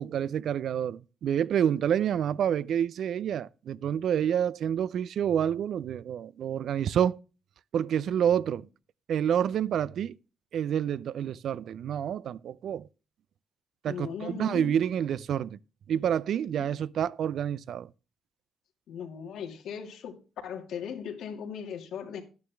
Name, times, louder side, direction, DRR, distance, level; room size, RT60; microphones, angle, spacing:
voice 1, 0.0-7.2 7.7-8.7 9.1-10.2 10.5-12.9 13.8-15.6 15.9-17.9, right 9 dB, 65° right, 0.4 m, -28 dB
voice 2, 13.9-14.7 18.9-20.1 20.4-22.2, left 7 dB, 80° left, 2.1 m, -38 dB
11.0 x 9.4 x 3.4 m
cardioid pair, 90°, 0 cm